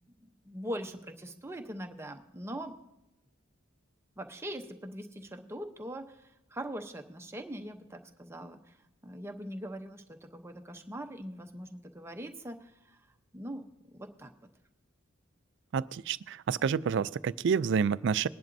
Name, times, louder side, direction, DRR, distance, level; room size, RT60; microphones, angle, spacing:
voice 1, 0.2-2.7 4.2-8.7 9.0-13.0 13.3-13.6 13.9-14.3, equal, 15° right, 4 dB, 0.8 m, -42 dB
voice 2, 15.7-18.3, right 6 dB, 60° right, 17 dB, 0.3 m, -29 dB
20.5 x 10.5 x 2.7 m, 0.91 s
head